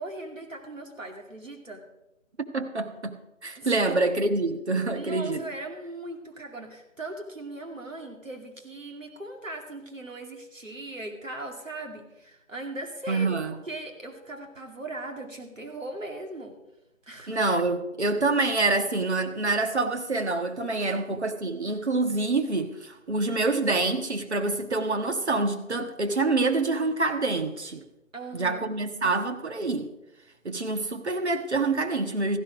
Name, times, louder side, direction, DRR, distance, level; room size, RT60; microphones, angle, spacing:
voice 1, 0.0-1.8 3.6-4.0 4.9-13.3 13.7-16.6 17.0-17.4 20.8-21.0 28.1-28.7, right 2 dB, 70° right, 3 dB, 2.6 m, -39 dB
voice 2, 2.5-5.4 13.1-13.5 17.3-27.8 28.3-29.9 30.4-32.4, right 3 dB, 55° right, 6 dB, 1.6 m, -26 dB
15.0 x 11.0 x 5.0 m, 0.94 s
figure-of-eight pair, 160°, 40 cm